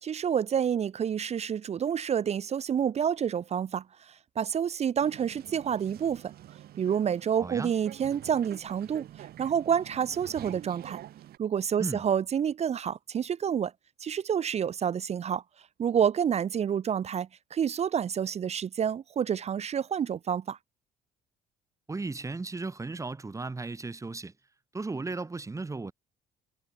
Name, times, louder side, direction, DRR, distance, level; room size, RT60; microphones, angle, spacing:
voice 1, 0.0-6.3 6.8-11.0 11.4-13.7 14.0-15.4 15.8-20.6, right 8 dB, 40° right, 0.8 m, -28 dB
sound 1, 5.0-11.4, right 13 dB, 65° right, 6.5 m, -47 dB
voice 2, 7.4-7.7 11.8-12.0 21.9-24.3 24.7-25.9, right 3 dB, 20° right, 5.0 m, -35 dB
cardioid pair, 110°, 17 cm